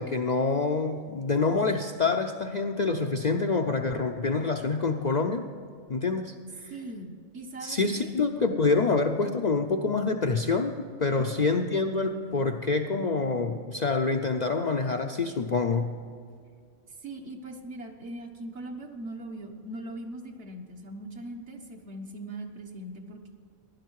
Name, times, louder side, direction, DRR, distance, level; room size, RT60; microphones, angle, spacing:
voice 1, 0.0-5.5 5.9-6.3 7.6-10.7 11.0-16.0, left 4 dB, 50° left, 4 dB, 0.6 m, -26 dB
voice 2, 6.7-8.1 11.1-11.5 17.0-23.3, right 1 dB, 60° right, 3 dB, 1.6 m, -40 dB
16.5 x 11.5 x 4.7 m, 2.2 s
omnidirectional pair, 1.3 m